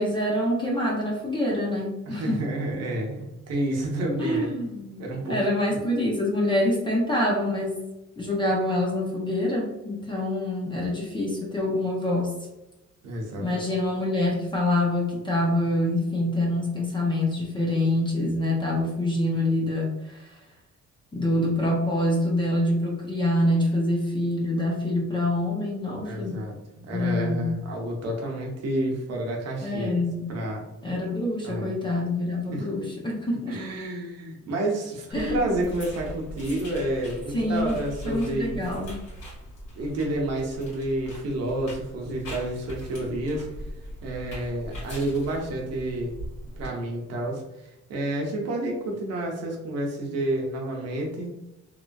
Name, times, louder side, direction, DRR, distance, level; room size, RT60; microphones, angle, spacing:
voice 1, 0.0-2.5 4.2-5.0 5.3-7.8 8.2-12.4 13.4-20.3 21.1-26.4 26.9-27.6 29.6-30.3 30.8-33.6 35.1-35.7 37.3-37.8 38.0-39.0, left 1 dB, 15° left, -3 dB, 0.4 m, -26 dB
voice 2, 2.1-4.5 5.0-5.4 5.7-5.8 13.0-13.6 26.0-30.0 30.3-30.6 31.4-31.7 32.5-32.7 33.5-38.7 39.8-43.5 44.0-46.2 46.6-51.3, right 1 dB, 55° right, -1 dB, 0.7 m, -30 dB
sound 1, 35.1-46.7, equal, 60° left, 1.5 m, -40 dB
3.0 x 2.5 x 2.2 m, 0.97 s
cardioid pair, 180°, 30 cm